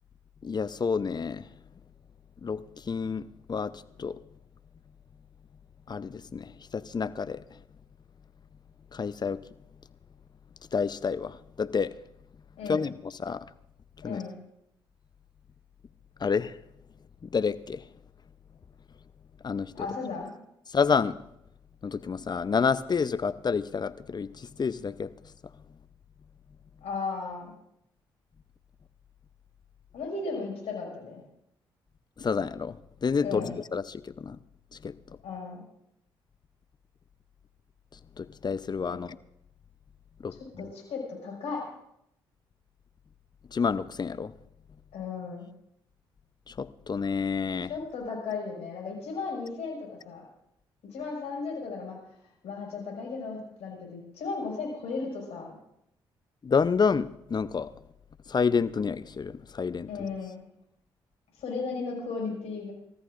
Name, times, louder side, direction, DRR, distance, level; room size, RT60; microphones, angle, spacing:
voice 1, 0.4-1.5 2.4-4.2 5.9-7.6 8.9-9.4 10.7-11.9 12.6-13.5 14.0-14.2 16.2-16.6 17.2-17.9 19.4-19.9 20.7-21.2 21.8-25.1 32.2-34.4 34.7-35.2 38.2-39.2 40.2-40.6 43.5-44.3 46.5-47.7 56.4-57.7 58.3-59.9, left 5 dB, 40° left, 15 dB, 0.7 m, -29 dB
voice 2, 14.0-14.3 19.8-20.3 26.8-27.5 29.9-31.2 33.2-33.5 35.2-35.6 38.9-39.0 40.6-41.6 44.9-45.5 47.7-50.2 50.9-52.0 52.4-55.5 59.9-60.4 61.4-62.7, left 4 dB, 75° left, -1 dB, 5.8 m, -35 dB
28.0 x 14.0 x 2.6 m, 0.78 s
hypercardioid pair, 50°, 11 cm